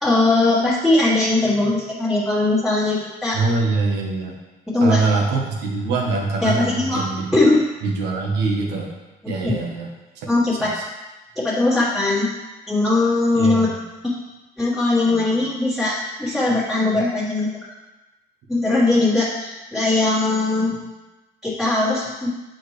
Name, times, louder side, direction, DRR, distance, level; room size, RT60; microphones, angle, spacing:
voice 1, 0.0-3.4 4.7-5.0 6.4-7.1 7.3-7.6 9.2-9.5 10.3-10.7 11.4-12.3 12.7-13.7 14.0-14.1 14.6-17.5 18.5-20.8 21.4-22.3, left 2 dB, ahead, -11 dB, 1.7 m, -20 dB
voice 2, 3.3-4.3 4.8-7.4 7.8-8.9 9.3-9.9 10.2-10.3 10.6-10.8 13.3-13.8, right 3 dB, 85° right, 0 dB, 1.3 m, -23 dB
7.9 x 4.5 x 3.3 m, 1.1 s
cardioid pair, 110°, 17 cm